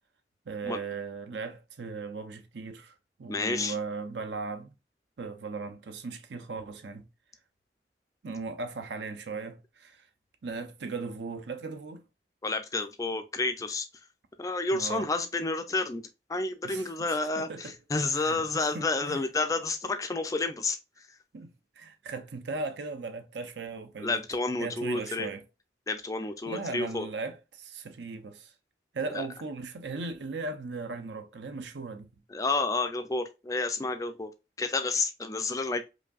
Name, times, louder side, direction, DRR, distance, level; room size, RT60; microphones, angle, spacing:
voice 1, 0.5-4.7 5.2-7.1 8.2-10.1 10.4-12.0 14.7-15.1 16.6-17.7 18.1-18.4 18.7-19.2 21.3-24.2 24.6-25.4 26.4-28.5 28.9-32.1, right 4 dB, 75° right, 0.6 m, -38 dB
voice 2, 3.3-3.7 12.4-13.9 14.4-16.0 16.3-20.8 24.0-25.3 25.9-27.1 29.1-29.3 32.3-34.3 34.6-35.8, left 3 dB, 20° left, 0.3 m, -30 dB
4.9 x 2.6 x 2.3 m
head